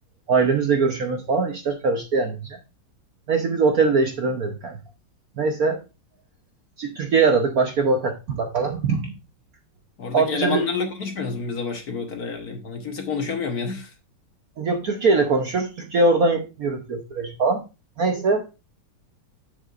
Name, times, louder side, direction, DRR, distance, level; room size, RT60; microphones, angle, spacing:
voice 1, 0.3-2.6 3.3-4.8 5.4-5.8 6.8-9.1 10.1-10.6 14.6-17.6 18.0-18.6, right 4 dB, 55° right, 1.1 m, -22 dB
voice 2, 10.0-13.9, left 5 dB, 50° left, 1.4 m, -28 dB
9.6 x 7.6 x 2.5 m
omnidirectional pair, 2.3 m